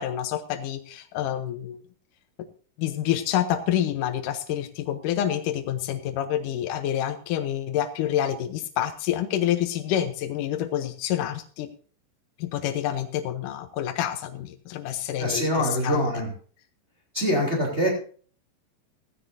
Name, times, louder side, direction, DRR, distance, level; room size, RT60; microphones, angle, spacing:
voice 1, 0.0-1.8 2.8-11.7 12.4-16.1, left 11 dB, 70° left, 7 dB, 2.1 m, -28 dB
voice 2, 15.2-16.3 17.1-17.9, equal, 20° right, -1 dB, 3.3 m, -24 dB
16.0 x 15.0 x 2.7 m, 0.43 s
omnidirectional pair, 4.4 m